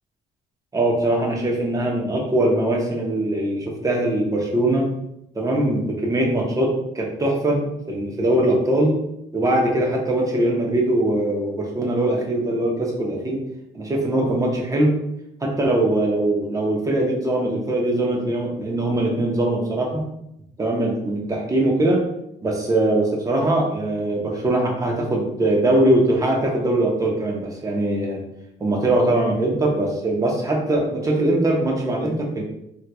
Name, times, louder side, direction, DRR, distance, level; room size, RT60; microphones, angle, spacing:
voice 1, 0.7-4.9 5.3-7.6 7.9-9.0 9.3-13.4 13.7-14.9 15.4-20.0 20.6-22.0 22.4-28.2 28.6-32.4, right 1 dB, 20° right, -1 dB, 0.9 m, -21 dB
3.5 x 2.9 x 2.2 m, 0.80 s
cardioid pair, 110°, 17 cm